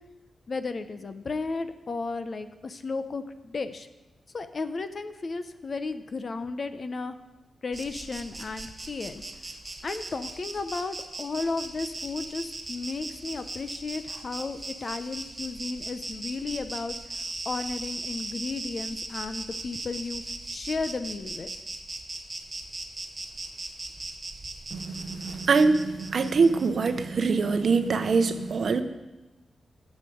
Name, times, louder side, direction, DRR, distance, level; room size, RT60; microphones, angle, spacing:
voice 1, 0.5-3.9 4.3-7.2 7.6-9.2 9.8-17.0 17.4-20.2 20.5-21.5, left 3 dB, 40° left, 10 dB, 0.7 m, -34 dB
Insect, 7.7-26.9, right 2 dB, 20° right, 1.1 m, -39 dB
voice 2, 24.7-28.8, right 4 dB, 55° right, 9 dB, 0.8 m, -24 dB
12.5 x 7.3 x 7.8 m, 1.1 s
wide cardioid pair, 140°, 0 cm